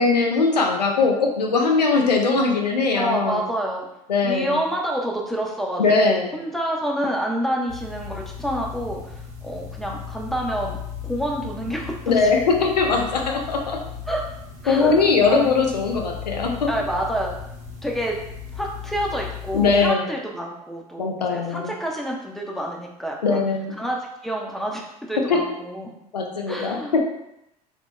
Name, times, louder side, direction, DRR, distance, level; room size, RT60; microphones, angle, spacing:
voice 1, 0.0-3.4 4.1-4.6 5.8-6.3 12.1-13.8 14.7-16.7 19.5-20.0 21.0-21.7 23.2-23.8 25.3-25.4 26.1-27.0, left 4 dB, 85° left, 1 dB, 0.4 m, -20 dB
voice 2, 2.9-3.9 4.2-9.0 9.4-10.8 11.0-12.2 14.1-14.2 14.6-15.5 16.7-17.3 17.8-18.2 18.5-23.4 23.8-24.0 24.2-25.9 26.5-27.0, right 1 dB, ahead, -1 dB, 0.4 m, -28 dB
sound 1, 7.7-19.9, left 7 dB, 40° right, 0.8 m, -36 dB
3.0 x 2.0 x 2.2 m, 0.82 s
figure-of-eight pair, 65°, 21 cm